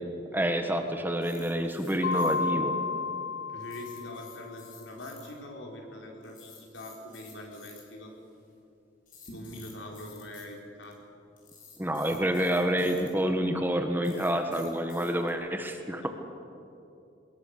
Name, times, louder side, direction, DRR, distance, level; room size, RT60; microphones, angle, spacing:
voice 1, 0.3-2.8 11.8-16.0, equal, 10° right, 5 dB, 1.4 m, -28 dB
sound 1, 1.2-2.3 3.6-5.3 6.2-7.8 9.1-10.5 10.8-10.9 11.4-13.1 14.0-15.3, left 5 dB, 45° left, 5.3 m, -51 dB
Mallet percussion, 2.0-4.6, left 3 dB, 65° left, 1.8 m, -32 dB
voice 2, 3.5-8.1 9.2-11.1 16.0-16.1, left 1 dB, 80° left, 1 dB, 4.3 m, -43 dB
24.0 x 20.5 x 6.7 m, 2.6 s
head